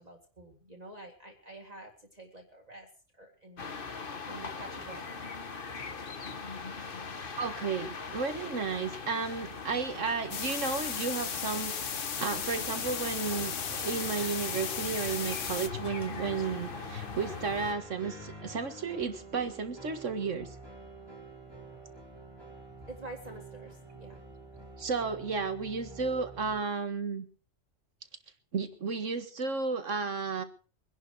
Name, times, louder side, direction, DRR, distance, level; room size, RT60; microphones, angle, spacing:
voice 1, 0.0-2.9 3.1-3.7 4.2-5.1 22.9-24.2, right 2 dB, 35° right, 0 dB, 2.3 m, -48 dB
sound 1, 3.6-17.7, left 4 dB, 50° left, 1.5 m, -41 dB
voice 2, 7.4-20.5 24.8-27.3 28.5-30.4, right 5 dB, 90° right, 9 dB, 2.1 m, -33 dB
sound 2, 10.3-15.7, left 7 dB, 85° left, 1.5 m, -36 dB
sound 3, 12.1-26.6, right 1 dB, 20° left, 4.0 m, -48 dB
23.0 x 11.0 x 4.8 m, 0.38 s
omnidirectional pair, 1.2 m